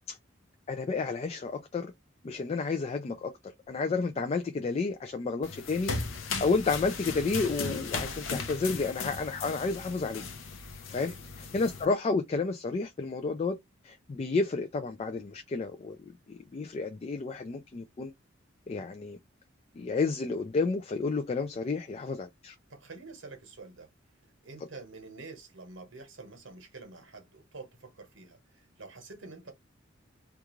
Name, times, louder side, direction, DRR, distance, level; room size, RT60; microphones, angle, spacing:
voice 1, 0.7-1.9 2.2-3.3 3.7-5.9 6.4-10.2 10.9-11.1 11.5-13.6 13.8-16.0 16.3-18.1 18.7-19.2 19.8-22.6, left 4 dB, 30° left, 0.3 m, -31 dB
sound 1, 5.4-11.9, left 4 dB, 80° left, 0.6 m, -37 dB
voice 2, 22.7-23.9 24.4-29.5, right 3 dB, 75° right, 1.0 m, -47 dB
2.4 x 2.4 x 2.9 m
head